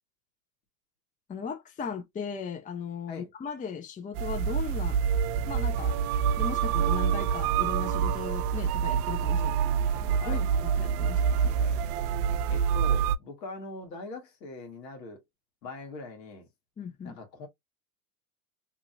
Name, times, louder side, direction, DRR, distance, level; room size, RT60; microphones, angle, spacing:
voice 1, 1.3-5.0 5.5-6.0 6.4-9.5 9.9-11.5 16.8-17.2, left 6 dB, 15° left, 0.5 m, -37 dB
sound 1, 4.1-13.2, right 7 dB, 65° right, 0.6 m, -26 dB
voice 2, 9.3-9.9 10.2-10.4 11.6-11.8 12.4-15.2 15.6-16.5 17.0-17.5, left 3 dB, 80° left, 1.6 m, -42 dB
2.9 x 2.9 x 2.4 m
hypercardioid pair, 85°, 50 cm